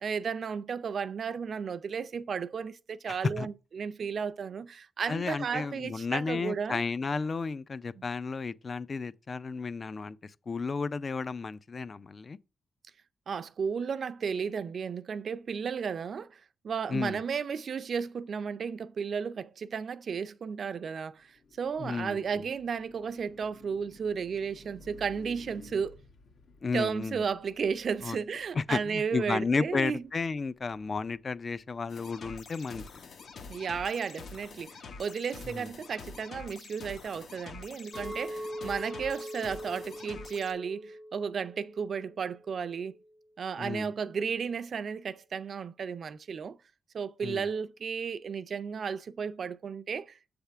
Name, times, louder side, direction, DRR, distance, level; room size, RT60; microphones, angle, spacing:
voice 1, 0.0-6.8 8.0-8.1 13.3-26.0 26.7-30.0 33.5-42.9 43.4-46.6 46.9-50.3, right 6 dB, 55° right, 0.4 m, -34 dB
voice 2, 3.1-3.5 5.1-12.4 16.9-17.2 21.8-22.4 26.6-27.2 28.0-28.2 28.5-32.8 35.5-35.7 43.6-43.9 47.2-47.5, left 4 dB, 35° left, 0.3 m, -33 dB
Car passing by, 21.1-33.4, left 3 dB, 80° left, 1.8 m, -57 dB
sound 1, 31.9-40.5, left 4 dB, 60° left, 0.8 m, -46 dB
Chink clink, 37.9-43.1, equal, 5° left, 0.6 m, -42 dB
8.0 x 3.5 x 5.5 m
wide cardioid pair, 135°, 0 cm